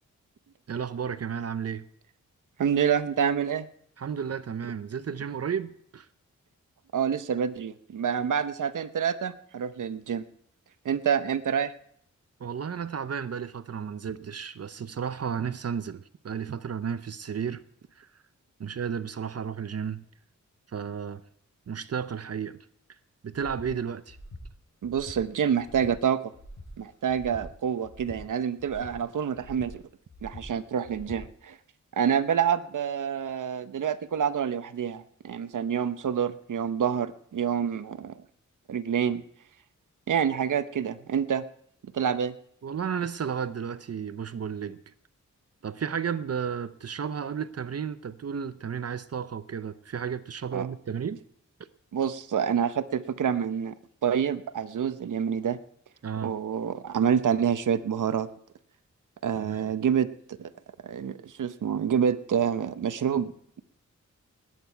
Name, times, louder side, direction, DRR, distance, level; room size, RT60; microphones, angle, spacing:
voice 1, 0.7-1.8 4.0-6.1 12.4-17.6 18.0-18.1 18.6-20.0 20.7-21.2 21.7-22.6 23.2-24.2 42.6-44.8 45.6-51.2 56.0-56.3 59.4-59.6, right 7 dB, 55° right, 0.7 m, -33 dB
voice 2, 2.6-3.7 6.9-10.2 10.8-11.7 24.8-26.3 26.8-29.8 30.2-31.6 31.9-38.2 38.7-39.2 40.1-41.4 41.9-42.3 50.5-50.7 51.9-53.7 54.0-55.6 56.2-58.3 59.2-60.5 60.8-63.3, right 8 dB, 80° right, 0.9 m, -27 dB
Breathing, 23.3-23.7 24.1-24.4 24.8-25.2 25.6-25.9 26.3-26.7 27.1-27.4 27.8-28.2 28.6-28.9 29.3-29.7 30.1-30.4 30.8-31.2, left 1 dB, 90° left, 5.8 m, -45 dB
19.5 x 9.2 x 4.6 m
wide cardioid pair, 80°, 30 cm